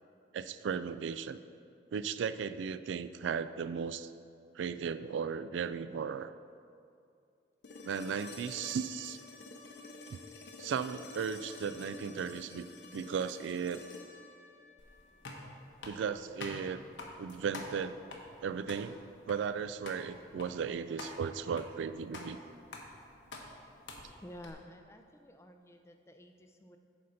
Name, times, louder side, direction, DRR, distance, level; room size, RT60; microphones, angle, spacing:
voice 1, 0.3-1.4 1.9-4.1 4.6-6.3 7.8-9.2 10.1-10.2 10.6-12.7 12.9-13.8 15.8-16.8 17.2-18.0 18.4-19.0 19.3-22.4, right 6 dB, 85° right, 13 dB, 0.3 m, -36 dB
sound 1, 7.6-15.7 17.8-17.9, left 3 dB, 65° left, 0.7 m, -50 dB
sound 2, 14.8-24.5, left 2 dB, 90° left, 1.1 m, -48 dB
voice 2, 24.2-26.8, left 1 dB, 15° left, 6 dB, 0.4 m, -51 dB
9.5 x 4.1 x 6.5 m, 2.4 s
head